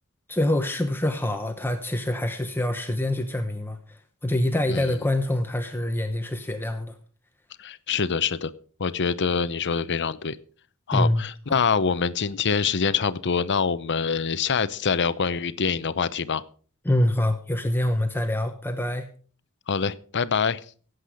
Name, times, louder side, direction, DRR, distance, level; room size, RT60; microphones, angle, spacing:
voice 1, 0.3-7.0 10.9-11.2 16.8-19.1, left 1 dB, 10° left, 1.0 m, -25 dB
voice 2, 7.6-8.5 8.8-10.4 10.9-16.4 19.7-20.6, left 5 dB, 55° left, 0.8 m, -25 dB
17.5 x 8.1 x 5.1 m
head